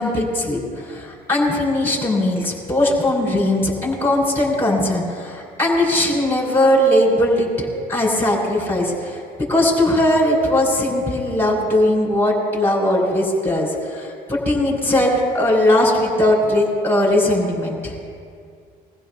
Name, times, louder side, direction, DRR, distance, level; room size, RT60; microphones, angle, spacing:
voice 1, 0.0-9.2 9.5-18.0, left 1 dB, 15° left, -2 dB, 4.2 m, -19 dB
22.5 x 15.5 x 2.2 m, 2.2 s
cardioid pair, 110°, 17 cm